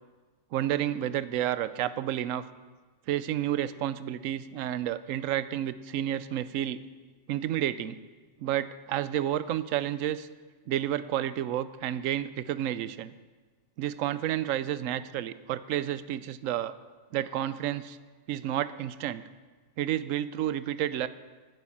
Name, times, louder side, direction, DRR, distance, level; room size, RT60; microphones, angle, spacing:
voice 1, 0.5-2.5 3.1-6.8 7.3-8.0 8.4-10.3 10.7-13.1 13.8-16.7 17.1-18.0 18.3-19.2 19.8-21.1, right 11 dB, 85° right, 14 dB, 1.0 m, -30 dB
9.5 x 9.3 x 7.2 m, 1.4 s
omnidirectional pair, 1.3 m